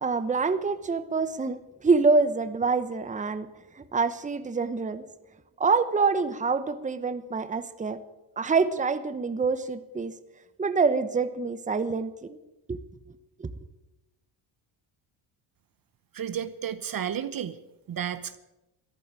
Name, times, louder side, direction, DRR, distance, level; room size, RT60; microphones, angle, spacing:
voice 1, 0.0-3.5 3.8-5.0 5.6-8.0 8.4-10.1 10.6-12.4 12.7-12.8 13.4-13.5, right 4 dB, 15° right, 11 dB, 0.9 m, -26 dB
voice 2, 16.1-17.6 17.9-18.4, right 9 dB, 45° right, 12 dB, 0.9 m, -32 dB
14.0 x 10.5 x 9.0 m, 0.99 s
cardioid pair, 100°, 50 cm